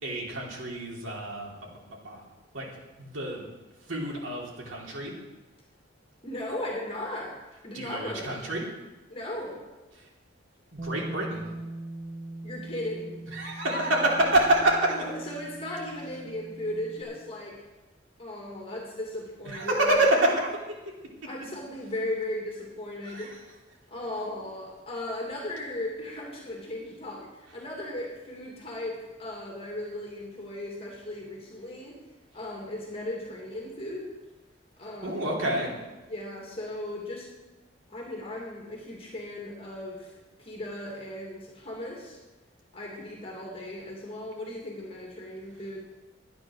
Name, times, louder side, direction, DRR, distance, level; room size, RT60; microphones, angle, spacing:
voice 1, 0.0-1.5 2.0-2.3 2.5-2.7 3.0-3.4 3.9-5.1 7.7-8.6 10.0-10.1 10.7-11.5 13.3-15.0 19.5-20.8 23.0-23.3 35.0-35.7, right 1 dB, 90° right, -2 dB, 3.2 m, -27 dB
voice 2, 6.2-7.4 7.6-8.4 9.1-9.6 12.4-13.2 14.9-17.6 18.2-20.0 21.2-23.4 23.9-32.0 32.3-34.1 34.8-35.3 36.1-37.3 37.9-42.2 42.7-45.8, left 1 dB, 30° left, -2 dB, 2.5 m, -37 dB
Bass guitar, 10.8-17.0, right 2 dB, 35° right, 1.7 m, -41 dB
12.0 x 9.4 x 6.4 m, 1.1 s
head